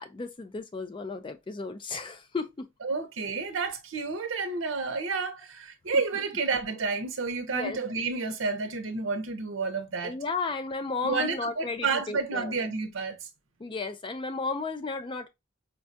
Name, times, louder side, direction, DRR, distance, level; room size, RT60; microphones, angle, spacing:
voice 1, 0.0-2.7 7.5-7.8 10.0-12.5 13.6-15.3, left 4 dB, 25° left, 0.3 m, -34 dB
voice 2, 2.8-10.2 11.0-13.3, right 4 dB, 75° right, 0.7 m, -30 dB
4.5 x 2.3 x 2.6 m
head